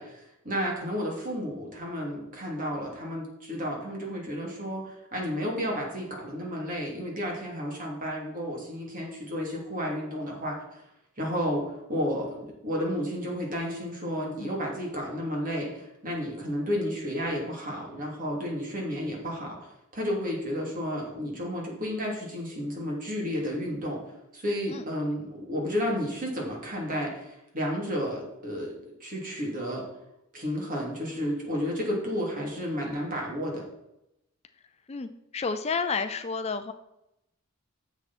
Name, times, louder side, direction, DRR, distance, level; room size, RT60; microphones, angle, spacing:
voice 1, 0.0-10.6 11.2-19.6 19.9-24.0 24.3-29.8 30.3-33.6, equal, 40° right, -2 dB, 2.9 m, -32 dB
voice 2, 34.9-36.7, left 5 dB, 30° left, 9 dB, 0.4 m, -31 dB
10.0 x 7.2 x 4.3 m, 0.86 s
head